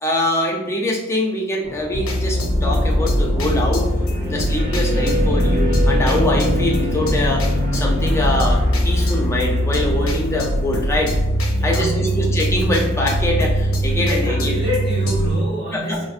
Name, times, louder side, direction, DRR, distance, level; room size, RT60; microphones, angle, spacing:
voice 1, 0.0-3.9 4.3-11.2 11.6-14.6 15.7-16.0, left 1 dB, 15° left, -1 dB, 0.5 m, -23 dB
sound 1, 1.6-11.8, equal, 45° right, 0.7 m, -23 dB
sound 2, 1.9-15.4, equal, 80° left, 0.7 m, -22 dB
voice 2, 11.5-12.3 13.9-16.0, left 1 dB, 25° right, -10 dB, 1.4 m, -28 dB
5.0 x 2.1 x 2.4 m, 0.96 s
head